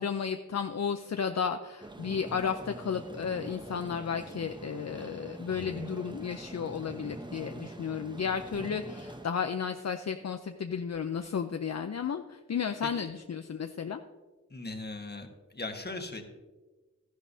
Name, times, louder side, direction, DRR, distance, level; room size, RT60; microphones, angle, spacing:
voice 1, 0.0-14.0, left 6 dB, 60° left, 7 dB, 0.5 m, -33 dB
sound 1, 1.8-9.3, right 1 dB, 15° right, 0.9 m, -44 dB
voice 2, 14.5-16.2, left 2 dB, 35° left, 4 dB, 1.4 m, -39 dB
12.5 x 11.0 x 2.7 m, 1.2 s
wide cardioid pair, 50°, 30 cm